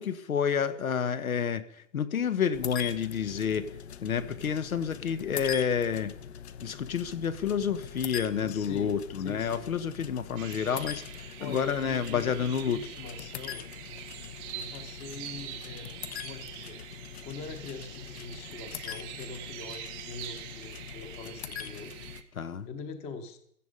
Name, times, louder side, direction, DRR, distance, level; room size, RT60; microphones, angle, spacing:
voice 1, 0.0-3.7 4.0-6.1 6.6-12.8 22.4-22.7, left 7 dB, 80° left, 14 dB, 1.4 m, -29 dB
sound 1, 2.5-22.2, left 9 dB, 50° left, 1.0 m, -43 dB
voice 2, 8.4-9.7 11.4-13.6 14.5-15.9 16.2-16.8 17.2-21.9 22.6-23.4, left 4 dB, 15° left, 10 dB, 1.0 m, -43 dB
sound 2, 10.4-22.2, right 11 dB, 10° right, 0.6 m, -44 dB
17.0 x 12.0 x 5.3 m, 0.70 s
hypercardioid pair, 155°, 41 cm